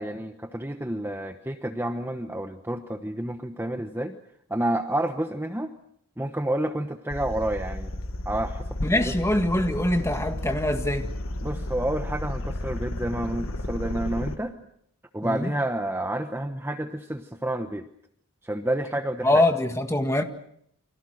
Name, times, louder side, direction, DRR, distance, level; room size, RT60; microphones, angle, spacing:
voice 1, 0.0-4.2 4.5-5.7 6.2-7.9 8.2-9.1 11.4-14.6 15.1-17.9 18.4-19.4, right 1 dB, 10° right, 1.0 m, -29 dB
sound 1, 7.1-14.4, left 1 dB, 65° left, 1.6 m, -33 dB
voice 2, 8.8-11.1 15.2-15.5 19.2-20.2, left 1 dB, 10° left, 1.9 m, -23 dB
29.5 x 25.0 x 6.4 m
head